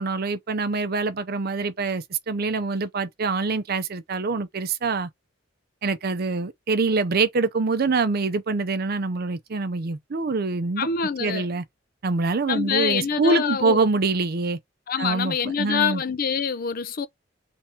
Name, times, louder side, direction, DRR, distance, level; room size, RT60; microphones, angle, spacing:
voice 1, 0.0-5.1 5.8-10.9 11.2-11.6 12.0-14.6 15.0-16.0, right 3 dB, 55° right, 0.6 m, -25 dB
voice 2, 10.8-11.5 12.5-13.8 14.9-17.1, left 6 dB, 50° left, 0.6 m, -25 dB
3.5 x 2.9 x 4.3 m
head